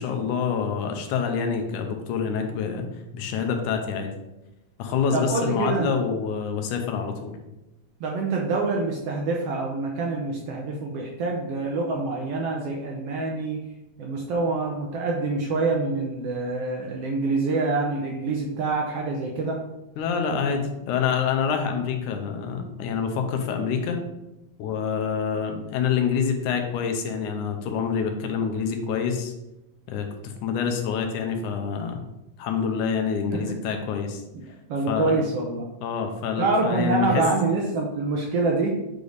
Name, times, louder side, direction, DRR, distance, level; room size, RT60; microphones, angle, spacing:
voice 1, 0.0-2.9 3.1-4.1 4.8-7.4 20.0-24.0 24.6-29.3 29.9-30.1 30.4-32.0 32.4-34.2 34.9-35.2 35.8-37.2, left 6 dB, 85° left, 4 dB, 2.3 m, -26 dB
voice 2, 5.1-5.9 8.0-13.6 14.0-19.6 33.3-33.5 34.3-34.4 34.7-35.7 36.4-38.8, right 3 dB, 75° right, 0 dB, 1.5 m, -26 dB
8.0 x 3.4 x 4.0 m, 0.93 s
omnidirectional pair, 3.5 m